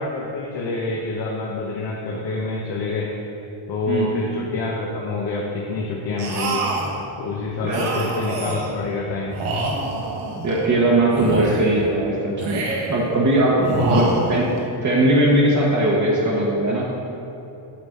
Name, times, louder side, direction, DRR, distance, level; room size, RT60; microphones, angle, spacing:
voice 1, 0.0-3.1 3.7-6.7 7.2-9.4 13.7-14.1, left 3 dB, 55° left, -3 dB, 1.1 m, -27 dB
sound 1, 6.2-7.0 7.7-8.8 9.3-10.7 11.1-11.9 12.4-13.1 13.6-14.6, right 2 dB, 80° right, 1.4 m, -26 dB
voice 2, 10.4-14.5 14.8-16.9, right 1 dB, 35° right, -5 dB, 1.2 m, -19 dB
8.6 x 4.0 x 6.5 m, 3.0 s
cardioid pair, 130°, 49 cm